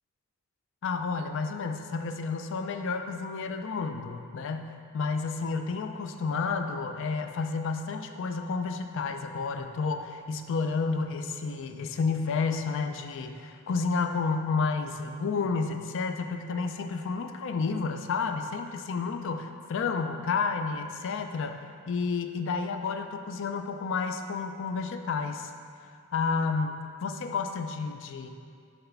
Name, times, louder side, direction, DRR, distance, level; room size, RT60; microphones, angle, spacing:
voice 1, 0.8-25.5 26.1-28.3, left 4 dB, 60° left, 6 dB, 0.4 m, -31 dB
5.9 x 3.3 x 5.6 m, 2.3 s
head